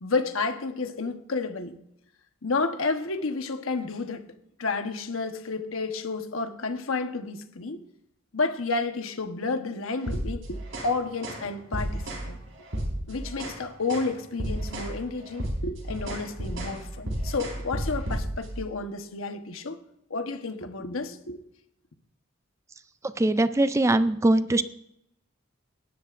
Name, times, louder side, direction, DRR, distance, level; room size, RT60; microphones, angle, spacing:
voice 1, 0.0-1.8 2.4-4.3 4.6-7.8 8.3-12.4 13.1-19.8 20.1-21.4, left 3 dB, 75° left, 1.2 m, -31 dB
sound 1, 10.0-10.9 11.2-11.5 11.7-12.3 12.7-13.6 13.9-14.1 14.4-14.9 15.2-18.5, right 1 dB, 65° right, 4.8 m, -32 dB
voice 2, 23.2-24.6, right 1 dB, 15° right, 0.4 m, -21 dB
18.5 x 12.5 x 2.6 m
head